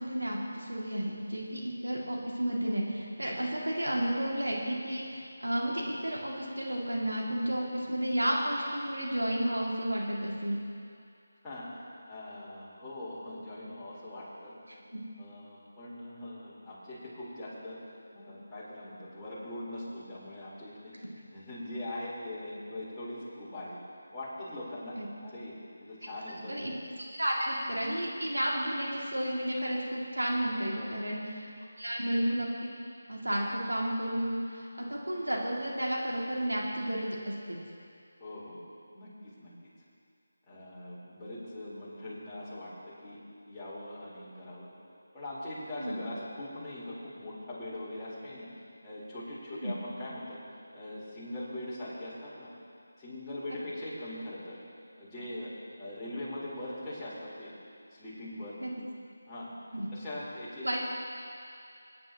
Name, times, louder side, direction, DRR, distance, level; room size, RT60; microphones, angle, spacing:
voice 1, 0.0-10.6 14.9-15.0 24.9-25.1 26.5-26.7 27.1-31.5 31.8-32.7 33.1-37.6 45.8-46.1 49.5-49.8 53.5-53.6 58.6-58.7 59.7-59.9 60.6-60.8, right 1 dB, 90° right, -3 dB, 2.2 m, -32 dB
voice 2, 12.1-14.5 15.2-17.8 18.1-20.9 21.3-23.8 24.1-26.7 30.6-31.1 38.2-38.6 38.9-39.5 40.5-43.2 43.5-44.7 45.1-48.5 48.8-50.4 50.7-52.5 53.0-54.6 55.0-55.5 55.8-57.5 57.9-58.6 59.3-59.5 59.9-60.7, left 1 dB, 10° left, -13 dB, 3.8 m, -41 dB
26.0 x 9.4 x 2.9 m, 2.4 s
figure-of-eight pair, 160°, 0 cm